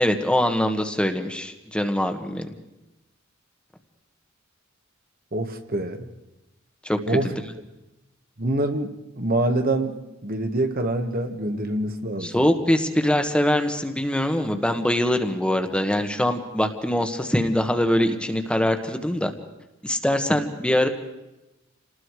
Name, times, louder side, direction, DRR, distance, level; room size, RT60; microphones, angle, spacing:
voice 1, 0.0-2.5 6.8-7.0 12.2-19.3 19.8-20.9, left 1 dB, 5° left, 6 dB, 1.4 m, -23 dB
voice 2, 5.3-6.1 7.1-7.3 8.4-12.4, right 1 dB, 45° right, 6 dB, 1.7 m, -26 dB
28.0 x 19.5 x 4.8 m, 0.97 s
head